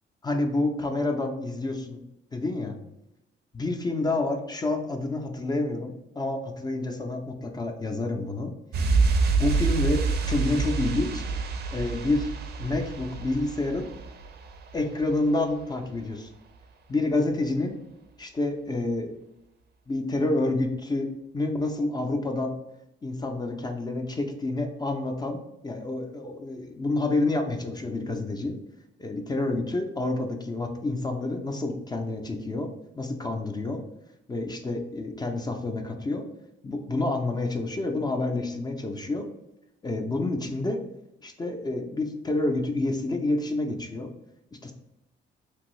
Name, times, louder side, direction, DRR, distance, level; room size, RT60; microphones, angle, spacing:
voice 1, 0.2-2.0 2.3-2.8 3.5-8.5 9.4-11.2 11.7-12.3 12.6-13.9 14.7-16.3 16.9-17.8 18.2-19.1 19.9-21.1 21.3-22.6 23.0-28.6 29.0-32.7 33.0-33.8 34.3-36.2 36.6-39.3 39.8-40.8 41.2-44.1 44.6-44.7, left 2 dB, 20° left, 4 dB, 0.4 m, -28 dB
sound 1, 8.7-15.2 15.5-15.6, right 4 dB, 55° right, 0.4 m, -27 dB
2.9 x 2.6 x 3.0 m, 0.88 s
cardioid pair, 95°, 20 cm